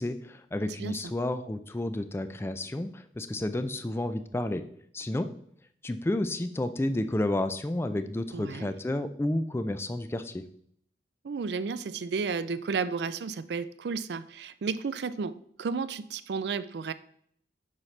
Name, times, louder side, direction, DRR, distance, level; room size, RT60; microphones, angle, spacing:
voice 1, 0.0-4.6 4.9-5.3 5.8-10.4, left 1 dB, 15° left, 10 dB, 0.3 m, -31 dB
voice 2, 8.3-8.7 11.2-16.9, right 5 dB, 65° right, 14 dB, 0.4 m, -32 dB
7.4 x 5.7 x 3.2 m, 0.66 s
head